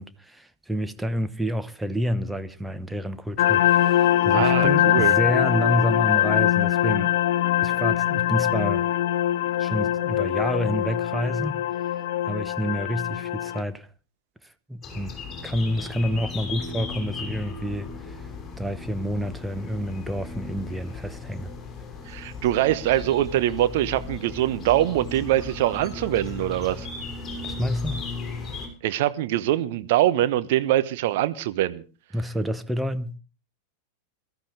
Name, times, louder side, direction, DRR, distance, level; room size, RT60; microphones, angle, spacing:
voice 1, 0.0-7.1 7.6-8.9 9.6-11.9 12.3-13.9 14.4-15.2 15.4-18.3 18.6-21.5 27.4-28.1 32.1-33.2, equal, 5° right, 0.9 m, -29 dB
sound 1, 3.4-13.6, left 12 dB, 50° left, 0.9 m, -22 dB
voice 2, 4.3-5.1 22.1-26.9 28.8-31.8, right 13 dB, 50° right, 1.0 m, -23 dB
sound 2, 14.8-28.7, left 4 dB, 15° left, 6.3 m, -36 dB
23.0 x 13.0 x 3.4 m
figure-of-eight pair, 90°, 0 cm